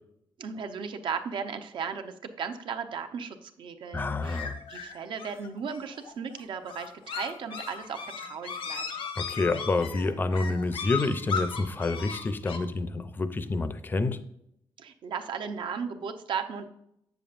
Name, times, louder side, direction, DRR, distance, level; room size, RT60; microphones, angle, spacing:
voice 1, 0.4-4.4 4.7-8.8 14.8-16.6, right 6 dB, 65° right, 7 dB, 0.8 m, -36 dB
voice 2, 3.9-4.6 9.2-14.2, left 3 dB, 20° left, 12 dB, 0.5 m, -28 dB
sound 1, 4.2-12.6, left 6 dB, 90° left, 1.2 m, -37 dB
7.8 x 7.0 x 2.5 m, 0.77 s
wide cardioid pair, 165°, 9 cm